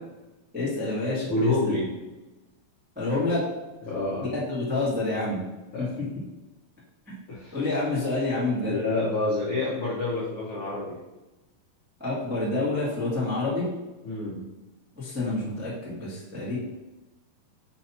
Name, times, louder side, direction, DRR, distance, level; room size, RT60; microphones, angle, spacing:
voice 1, 0.5-1.5 2.9-3.4 4.2-5.4 7.1-7.2 7.5-8.8 12.0-13.7 14.9-16.6, left 2 dB, 15° right, -9 dB, 0.3 m, -28 dB
voice 2, 1.3-1.9 3.9-4.3 5.7-5.9 7.3-7.6 8.6-11.0 14.0-14.4, left 2 dB, 70° left, -8 dB, 1.3 m, -28 dB
6.1 x 2.9 x 5.6 m, 1.1 s
omnidirectional pair, 4.4 m